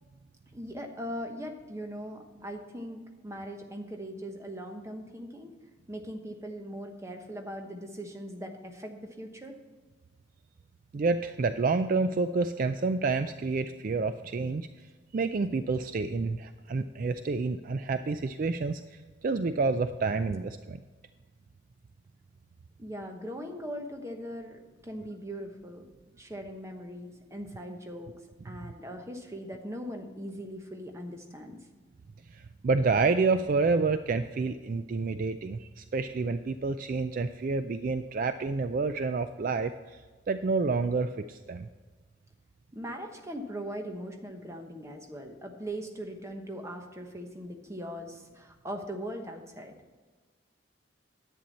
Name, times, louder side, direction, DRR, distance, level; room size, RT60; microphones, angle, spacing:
voice 1, 0.5-5.6 5.9-9.6 22.8-25.9 26.2-28.1 28.4-31.7 42.7-49.7, equal, 15° right, 3 dB, 1.0 m, -40 dB
voice 2, 10.9-14.9 15.1-20.8 32.3-41.7, right 4 dB, 45° right, 10 dB, 0.3 m, -29 dB
10.5 x 8.7 x 4.2 m, 1.4 s
head